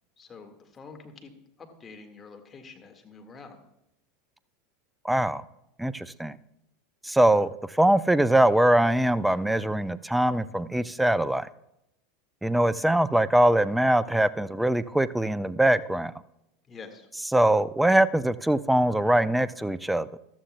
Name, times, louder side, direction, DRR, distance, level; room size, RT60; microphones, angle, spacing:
voice 1, 0.2-1.3 1.6-3.6 16.7-17.1, left 4 dB, 25° left, 4 dB, 1.7 m, -46 dB
voice 2, 5.0-5.4 5.8-6.4 7.0-11.5 12.4-16.1 17.3-20.2, right 1 dB, 5° right, 17 dB, 0.4 m, -22 dB
14.5 x 12.5 x 2.2 m, 0.82 s
hypercardioid pair, 85°, 0 cm